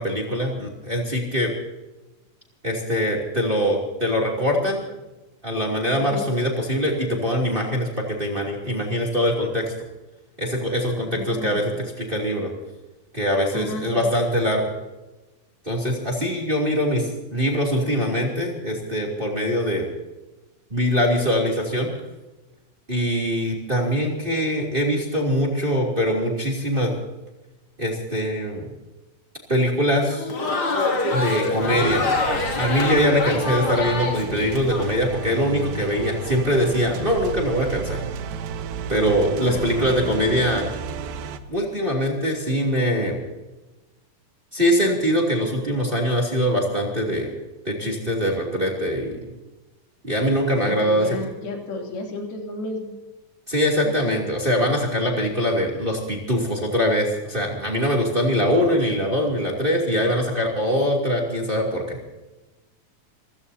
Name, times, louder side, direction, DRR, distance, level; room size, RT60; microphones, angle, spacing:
voice 1, 0.0-1.5 2.6-4.9 5.4-9.7 10.4-12.5 13.1-14.6 15.6-19.8 20.7-21.9 22.9-26.9 27.8-28.7 29.5-30.3 31.1-32.1 32.5-38.0 38.9-40.6 41.5-43.2 44.5-47.3 47.6-49.2 50.0-51.1 53.5-62.0, equal, 15° right, 0 dB, 2.5 m, -23 dB
voice 2, 10.9-11.7 13.5-14.1 39.5-40.4 50.6-52.9 53.8-54.3, left 1 dB, 85° left, 1 dB, 4.9 m, -33 dB
Crowd, 30.0-34.9, left 3 dB, 40° left, 3.0 m, -25 dB
sound 1, 31.6-41.4, right 6 dB, 85° right, 2.8 m, -33 dB
27.0 x 16.0 x 2.8 m, 1.1 s
omnidirectional pair, 4.2 m